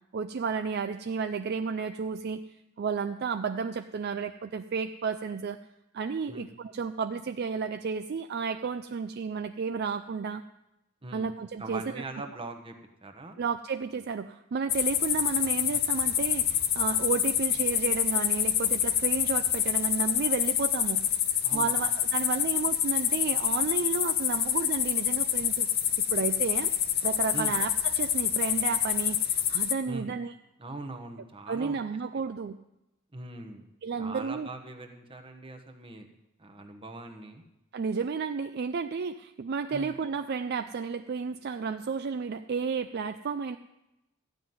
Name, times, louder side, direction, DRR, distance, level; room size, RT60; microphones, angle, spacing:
voice 1, 0.1-2.4 2.8-5.6 5.9-10.4 11.1-12.0 13.4-21.1 21.5-25.7 26.1-26.7 27.0-30.3 31.5-32.6 33.8-34.5 37.7-43.6, right 5 dB, 50° right, 9 dB, 0.4 m, -32 dB
voice 2, 11.6-12.7 13.0-13.4 21.4-21.8 27.3-27.6 29.9-30.1 30.6-31.8 32.1-32.2 33.1-33.6 34.0-36.1 36.4-37.4 39.7-39.9, right 2 dB, 25° right, 4 dB, 1.2 m, -41 dB
sound 1, 14.7-29.7, left 10 dB, 45° left, 0.7 m, -27 dB
13.5 x 5.7 x 9.4 m, 0.92 s
head